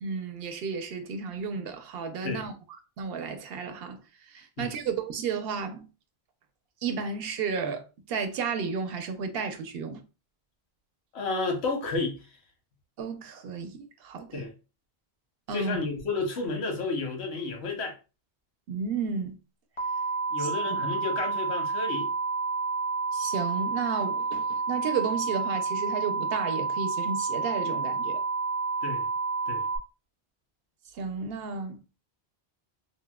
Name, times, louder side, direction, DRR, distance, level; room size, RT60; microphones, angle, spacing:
voice 1, 0.0-2.5 3.0-5.9 6.8-10.0 13.0-14.4 15.5-15.8 18.7-19.4 20.4-20.8 23.1-28.2 30.9-31.8, right 5 dB, 70° right, 0.8 m, -33 dB
voice 2, 11.1-12.2 14.3-14.5 15.5-17.9 20.3-22.1 28.8-29.1 29.5-29.6, left 3 dB, 85° left, 1.1 m, -31 dB
sound 1, 19.8-29.8, right 4 dB, 40° left, 0.4 m, -30 dB
4.0 x 2.0 x 2.2 m
omnidirectional pair, 1.1 m